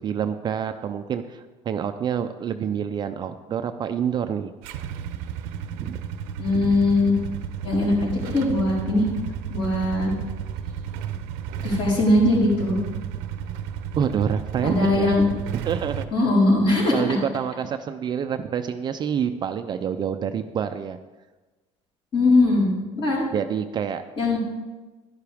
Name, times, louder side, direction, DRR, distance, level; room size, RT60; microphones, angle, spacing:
voice 1, 0.0-4.5 5.8-6.0 14.0-15.1 15.6-16.0 16.9-21.0 23.3-24.0 24.3-24.4, right 8 dB, 30° right, 8 dB, 0.5 m, -27 dB
Motorcycle / Engine starting / Idling, 4.6-16.1, right 8 dB, 85° right, 0.7 m, -33 dB
voice 2, 6.4-7.2 7.6-9.0 9.5-10.1 11.6-12.8 14.6-15.3 16.1-17.2 22.1-22.7 22.9-23.2 24.2-24.4, left 2 dB, 40° left, -4 dB, 4.4 m, -20 dB
11.5 x 11.5 x 3.5 m, 1.2 s
cardioid pair, 135°, 14 cm